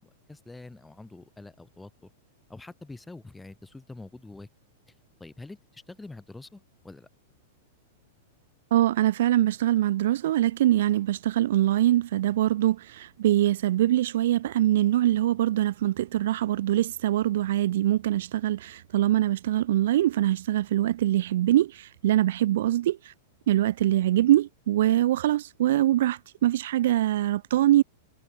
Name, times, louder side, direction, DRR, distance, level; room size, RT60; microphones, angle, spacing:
voice 1, 0.0-2.1 2.5-4.5 4.9-5.0 5.2-7.1, left 2 dB, 5° left, 4.4 m, -45 dB
voice 2, 8.7-23.1 23.5-27.8, right 13 dB, 60° right, 0.8 m, -23 dB
supercardioid pair, 175°, 0 cm